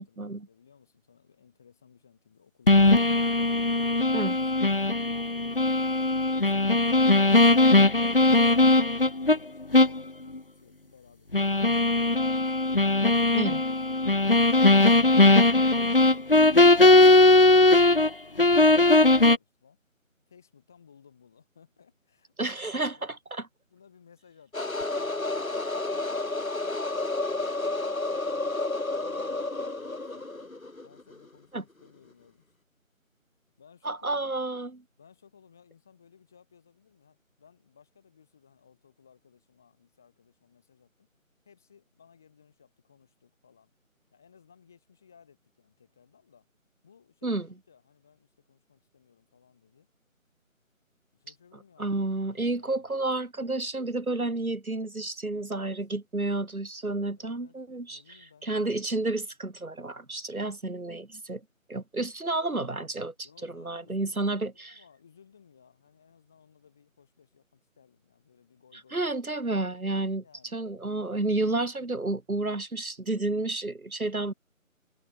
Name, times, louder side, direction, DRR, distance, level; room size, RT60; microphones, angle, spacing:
voice 1, 0.0-3.0 3.5-8.1 8.7-12.1 20.3-23.1 23.7-28.5 28.9-30.3 30.8-32.5 33.6-34.4 35.0-41.1 41.4-43.7 44.1-46.5 46.8-49.9 51.1-52.9 55.3-55.7 57.2-57.6 57.9-58.9 63.2-69.7 70.2-70.6 74.2-74.3, left 7 dB, ahead, 2.5 m, -59 dB
sound 1, 2.7-9.4 9.7-10.0 10.3-10.4 11.3-18.1 18.4-19.4, left 2 dB, 40° left, 1.7 m, -19 dB
voice 2, 22.4-23.5 31.5-31.6 33.9-34.7 47.2-47.5 51.8-58.0 58.4-61.4 61.7-64.7 68.9-70.2 70.5-74.3, right 2 dB, 90° right, 5.2 m, -30 dB
sound 2, 24.5-31.2, left 2 dB, 75° left, 6.3 m, -31 dB
figure-of-eight pair, 180°, 42 cm